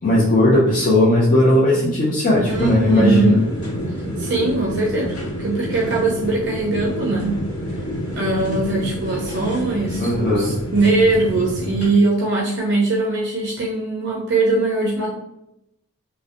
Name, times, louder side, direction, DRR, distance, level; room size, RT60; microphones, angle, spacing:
voice 1, 0.0-3.4 10.0-10.5, left 1 dB, 35° left, -7 dB, 0.4 m, -17 dB
sound 1, 2.4-11.9, equal, 85° left, 0.8 m, -28 dB
voice 2, 2.5-3.4 4.2-7.4 8.2-15.1, right 3 dB, 50° right, -3 dB, 0.4 m, -21 dB
2.6 x 2.1 x 2.3 m, 0.84 s
head